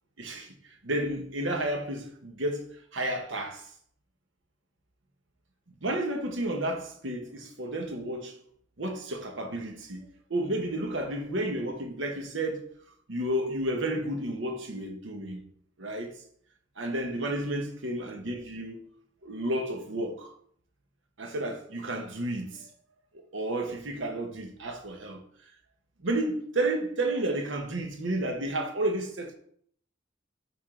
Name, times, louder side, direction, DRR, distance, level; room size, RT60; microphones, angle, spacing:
voice 1, 0.2-3.7 5.8-8.4 8.8-12.7 13.1-15.4 15.8-16.1 16.8-18.8 19.2-20.3 21.2-22.7 23.3-25.2 26.0-29.4, right 1 dB, 70° right, 1.1 m, -31 dB
9.4 x 3.7 x 3.7 m
head